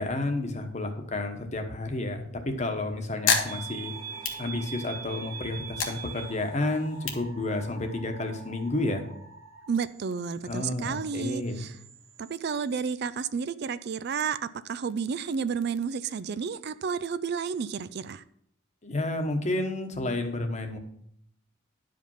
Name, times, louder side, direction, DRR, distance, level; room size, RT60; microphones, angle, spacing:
voice 1, 0.0-3.9 4.4-9.0 10.4-11.7 18.8-20.8, left 2 dB, 35° left, 5 dB, 1.2 m, -31 dB
sound 1, 2.6-5.1 5.5-8.1, left 5 dB, 90° left, 1.4 m, -32 dB
sound 2, 3.5-12.8, right 6 dB, 80° right, 1.5 m, -44 dB
voice 2, 9.7-11.8 12.2-14.4 14.6-18.2, right 6 dB, 55° right, 14 dB, 0.4 m, -31 dB
10.5 x 5.2 x 5.6 m, 0.69 s
head